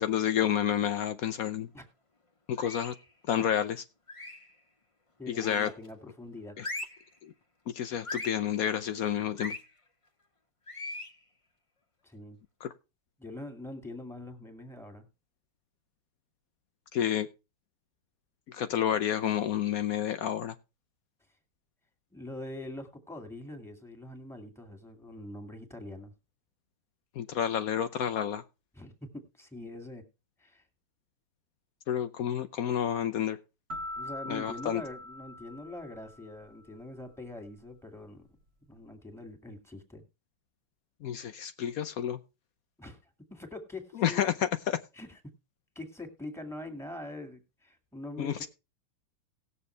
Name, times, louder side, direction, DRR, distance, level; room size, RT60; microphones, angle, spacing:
voice 1, 0.0-1.7 2.5-2.9 3.3-3.8 5.4-5.7 6.6-6.7 7.2-7.3 7.7-9.6 12.6-12.7 16.9-17.3 18.5-20.5 27.2-28.4 31.9-33.4 34.3-34.8 41.0-42.2 44.0-44.8 48.2-48.5, left 10 dB, 90° left, 0.7 m, -29 dB
sound 1, 2.6-3.0 4.1-4.5 5.4-5.9 6.6-7.1 8.0-8.4 9.4-9.6 10.7-11.2, left 2 dB, 20° left, 1.0 m, -39 dB
voice 2, 5.2-6.6 12.0-12.4 13.2-15.1 22.1-26.1 28.7-30.0 30.4-30.6 34.0-38.3 38.7-40.0 42.8-43.0 43.3-44.2 44.9-45.2 45.8-48.5, left 2 dB, ahead, 2.1 m, -43 dB
sound 2, 33.7-36.5, left 1 dB, 35° right, 1.2 m, -42 dB
18.5 x 6.9 x 3.3 m
omnidirectional pair, 2.4 m